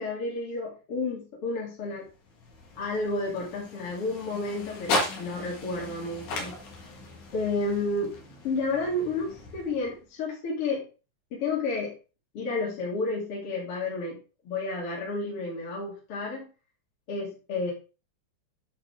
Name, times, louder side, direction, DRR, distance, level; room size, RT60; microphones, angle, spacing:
voice 1, 0.0-2.0 2.8-6.6 7.3-8.1 8.4-10.8 11.3-11.9 12.3-14.2 14.4-16.5 17.1-17.7, left 3 dB, 50° left, -4 dB, 3.3 m, -31 dB
sound 1, 1.9-10.2, left 2 dB, 75° left, 3.1 m, -36 dB
8.7 x 6.8 x 3.6 m, 0.33 s
omnidirectional pair, 3.6 m